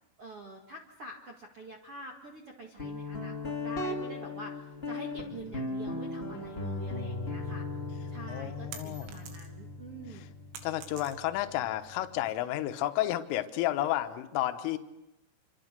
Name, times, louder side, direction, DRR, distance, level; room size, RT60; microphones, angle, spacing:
voice 1, 0.2-4.6 4.8-7.7 8.1-10.3, right 2 dB, 55° right, 1 dB, 1.5 m, -46 dB
Guitar, 2.8-12.3, left 2 dB, 50° left, 0.6 m, -38 dB
voice 2, 8.3-9.2 10.1-10.3 10.6-14.8, left 14 dB, 80° left, 8 dB, 3.6 m, -32 dB
sound 1, 8.7-9.7 10.1-11.5, right 7 dB, 80° right, 4.6 m, -47 dB
27.0 x 26.5 x 6.7 m, 0.90 s
omnidirectional pair, 5.7 m